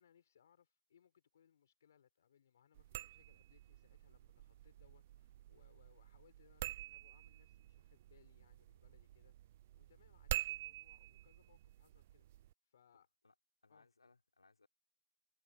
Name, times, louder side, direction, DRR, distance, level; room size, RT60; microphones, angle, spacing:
voice 1, 0.0-13.1 13.7-13.9, left 8 dB, 35° left, 4.5 m, -71 dB
sound 1, 2.7-12.5, right 14 dB, 20° right, 0.4 m, -48 dB
voice 2, 12.9-13.3 13.6-14.7, left 3 dB, 85° left, 5.6 m, -70 dB
hypercardioid pair, 170°, 3 cm